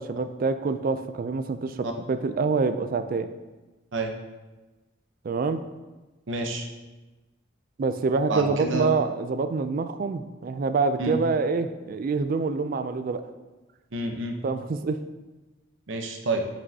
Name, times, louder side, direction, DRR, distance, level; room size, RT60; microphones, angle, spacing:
voice 1, 0.0-3.3 5.2-5.6 7.8-13.2 14.4-15.0, right 4 dB, 45° right, 10 dB, 0.3 m, -26 dB
voice 2, 6.3-6.7 8.3-8.9 11.0-11.1 13.9-14.4 15.9-16.4, right 2 dB, 65° right, 3 dB, 0.8 m, -28 dB
7.6 x 5.4 x 2.8 m, 1.2 s
head